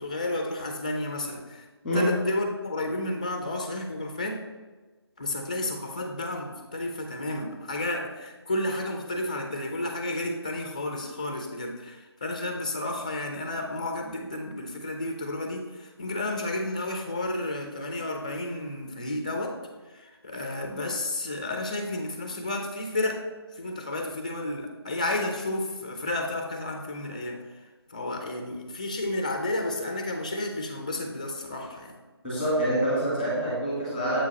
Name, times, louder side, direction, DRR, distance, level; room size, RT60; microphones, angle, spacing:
voice 1, 0.0-1.7 1.9-4.4 5.2-19.6 19.8-23.3 23.5-32.0, left 1 dB, 15° left, 3 dB, 0.5 m, -32 dB
voice 2, 32.2-34.2, right 1 dB, 5° right, -7 dB, 1.6 m, -26 dB
7.5 x 4.8 x 4.1 m, 1.3 s
figure-of-eight pair, 170°, 14 cm